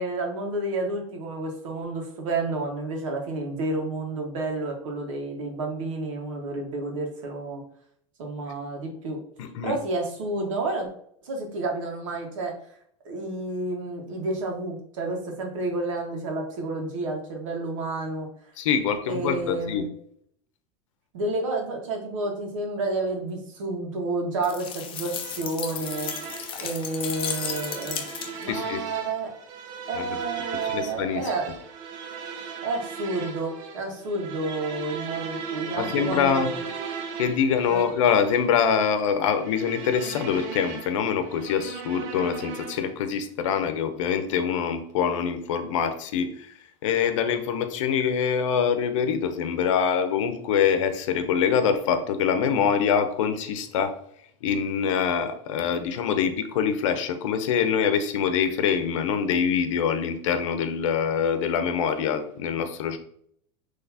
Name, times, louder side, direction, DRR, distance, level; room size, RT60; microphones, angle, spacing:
voice 1, 0.0-7.6 8.2-9.2 9.6-10.9 11.2-12.5 13.0-18.3 19.1-19.9 21.1-26.1 26.6-29.3 29.9-31.5 32.6-36.6 37.7-37.9, right 2 dB, 85° right, 1 dB, 1.5 m, -30 dB
voice 2, 9.4-9.8 18.6-19.8 28.5-28.8 29.9-30.2 30.5-31.2 35.8-36.5 37.2-46.5 46.8-53.9 54.4-63.0, left 7 dB, 75° left, 8 dB, 0.8 m, -24 dB
sound 1, 24.4-28.6, left 8 dB, 35° left, 0.6 m, -34 dB
sound 2, 25.0-43.0, right 6 dB, 55° right, 0.8 m, -38 dB
5.8 x 3.1 x 2.8 m, 0.68 s
supercardioid pair, 130°, 16 cm